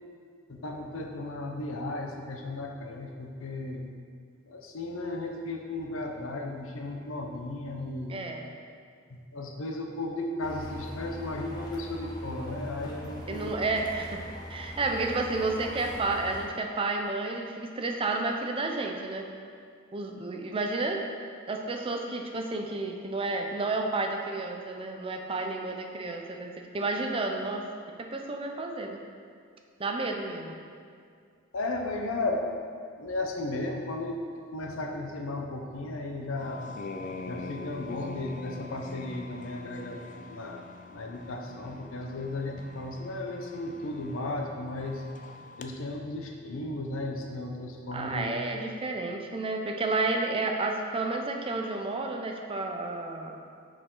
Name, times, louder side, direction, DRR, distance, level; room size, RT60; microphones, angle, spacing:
voice 1, 0.5-3.9 4.5-8.2 9.1-13.6 31.5-32.5 33.0-34.3 34.5-36.6 37.3-40.0 40.3-40.6 40.9-45.0 45.6-48.3, left 2 dB, 75° left, 2 dB, 0.7 m, -35 dB
voice 2, 8.1-8.5 13.3-19.3 19.9-21.0 21.5-26.5 26.7-27.7 28.1-29.0 29.8-30.5 47.9-53.4, right 3 dB, 25° right, 3 dB, 0.5 m, -31 dB
sound 1, 10.4-16.5, left 1 dB, 20° left, 0.9 m, -41 dB
sound 2, 36.4-45.7, left 3 dB, 40° left, 0.4 m, -44 dB
6.2 x 4.9 x 3.8 m, 2.2 s
head